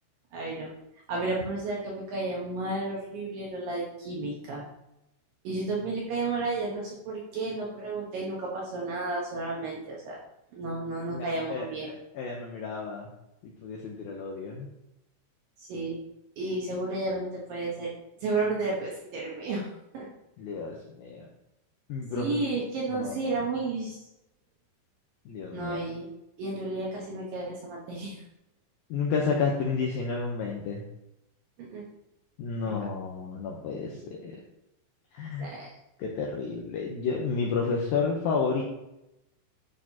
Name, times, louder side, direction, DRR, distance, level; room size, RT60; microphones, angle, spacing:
voice 1, 0.3-0.7 1.1-4.6 5.4-10.2 10.5-11.9 15.6-16.0 16.4-17.9 18.2-19.7 19.9-20.1 22.2-24.0 25.5-26.1 26.4-28.2 31.6-31.8 32.7-32.8 35.4-35.7, right 3 dB, 70° right, -3 dB, 2.2 m, -32 dB
voice 2, 11.1-13.1 13.6-14.7 20.4-21.3 21.9-22.3 22.9-23.2 25.3-25.8 28.9-30.8 32.4-34.4 35.1-35.5 36.0-38.6, left 5 dB, 85° left, -1 dB, 2.1 m, -31 dB
11.5 x 6.1 x 2.8 m, 0.89 s
omnidirectional pair, 5.3 m